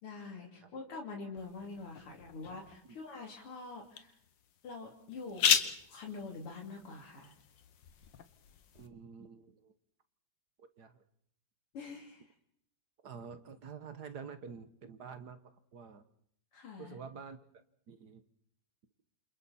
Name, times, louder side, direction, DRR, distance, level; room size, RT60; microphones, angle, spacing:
voice 1, 0.0-4.2 4.6-5.6 5.9-7.3 11.7-12.3 16.5-17.0, left 4 dB, 85° left, 0 dB, 3.9 m, -45 dB
sound 1, 1.4-8.9, left 8 dB, 60° left, 1.8 m, -37 dB
voice 2, 8.7-9.7 10.6-11.0 13.0-16.0 16.8-17.4 17.9-18.2, right 6 dB, 55° right, 10 dB, 1.6 m, -48 dB
28.5 x 27.0 x 4.3 m, 0.68 s
omnidirectional pair, 2.4 m